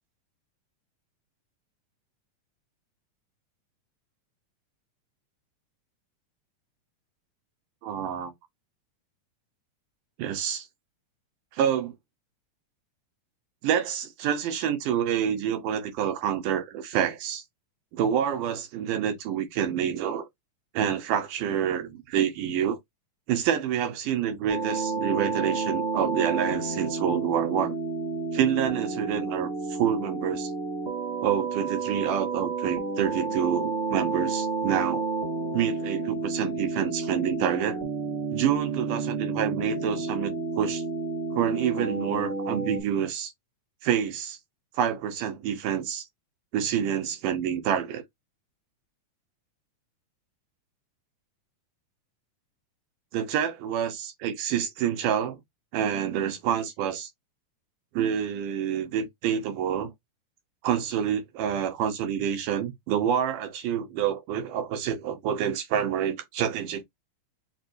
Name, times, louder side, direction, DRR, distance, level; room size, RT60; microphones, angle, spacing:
voice 1, 7.8-8.3 10.2-10.7 11.5-11.9 13.6-17.4 17.9-20.3 20.7-22.8 23.3-27.8 28.3-30.5 31.2-35.1 35.5-37.8 38.3-40.8 41.3-43.3 43.8-44.4 44.8-46.1 46.5-48.0 53.1-55.4 55.7-57.1 57.9-59.9 60.6-66.8, right 9 dB, 90° right, 2.6 m, -27 dB
sound 1, 24.5-42.8, right 3 dB, 35° right, 0.6 m, -31 dB
5.9 x 2.5 x 2.6 m
omnidirectional pair, 3.6 m